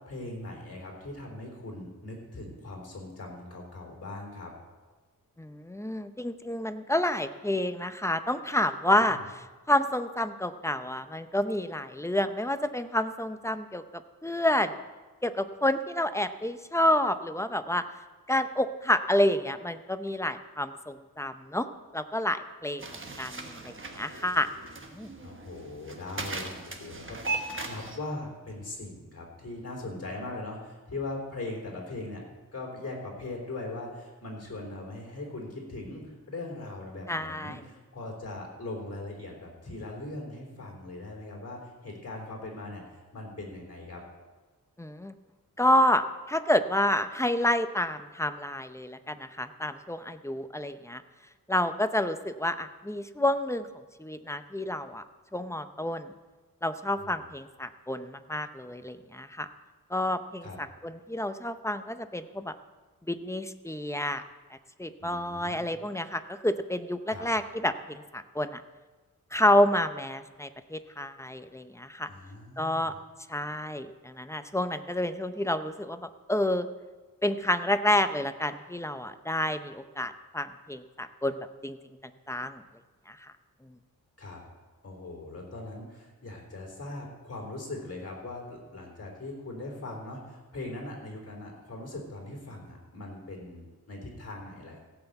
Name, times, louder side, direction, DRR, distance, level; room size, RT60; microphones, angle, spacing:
voice 1, 0.1-4.5 8.9-9.2 25.2-32.2 32.5-44.0 57.0-57.3 60.4-60.6 65.0-65.8 67.1-67.3 72.1-73.0 84.2-84.4 84.8-94.8, left 2 dB, 45° left, 0 dB, 3.6 m, -40 dB
voice 2, 5.4-13.8 14.2-14.8 15.2-17.8 18.3-21.7 21.9-22.8 23.2-24.5 24.9-25.1 37.1-37.6 44.8-45.1 45.6-51.0 51.5-55.0 55.3-56.1 56.6-59.5 59.9-62.5 63.1-64.2 64.8-68.6 69.3-72.1 72.6-72.9 73.3-76.0 76.3-76.7 77.2-81.8 82.3-82.6 83.1-83.3 83.6-83.7, left 1 dB, 10° left, 10 dB, 0.6 m, -29 dB
sound 1, 22.8-28.0, right 3 dB, 35° right, 1.3 m, -38 dB
16.0 x 5.9 x 8.0 m, 1.3 s
wide cardioid pair, 110°, 35 cm